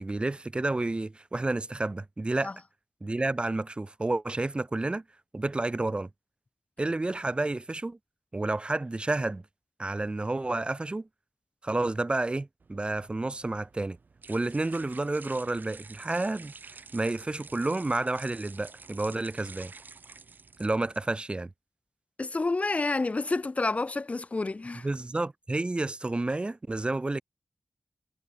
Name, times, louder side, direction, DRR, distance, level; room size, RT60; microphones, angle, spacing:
voice 1, 0.0-2.5 3.0-5.0 5.3-6.1 6.8-8.0 8.3-9.4 9.8-11.1 11.6-14.0 14.3-19.7 20.6-21.5 24.8-27.2, right 2 dB, 30° right, 1.3 m, -30 dB
sound 1, 12.6-21.2, right 4 dB, 70° right, 3.9 m, -50 dB
voice 2, 22.2-24.9, left 3 dB, 45° left, 1.5 m, -29 dB
wide cardioid pair, 80°, 3 cm